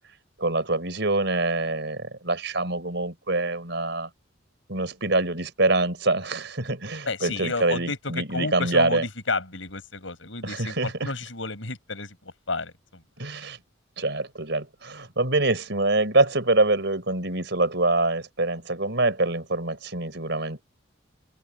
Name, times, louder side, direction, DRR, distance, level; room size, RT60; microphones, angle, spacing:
voice 1, 0.4-4.1 4.7-9.0 10.4-11.1 13.2-13.6 14.0-20.6, right 2 dB, 60° right, 4.7 m, -25 dB
voice 2, 7.1-13.0, left 3 dB, 80° left, 5.9 m, -31 dB
open air
head